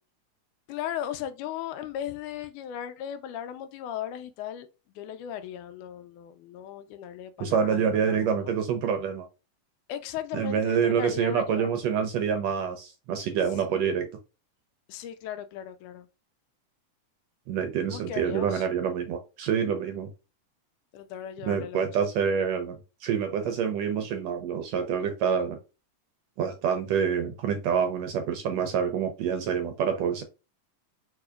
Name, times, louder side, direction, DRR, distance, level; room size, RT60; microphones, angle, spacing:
voice 1, 0.7-4.7 5.0-8.6 9.9-11.8 13.7-14.0 14.9-16.1 17.9-18.7 20.9-22.0, left 10 dB, 80° left, 2.1 m, -37 dB
voice 2, 7.4-9.2 10.3-14.1 17.5-20.1 21.4-22.8 23.0-25.6 26.4-30.2, right 7 dB, 75° right, 1.6 m, -27 dB
4.9 x 4.6 x 2.3 m
omnidirectional pair, 3.6 m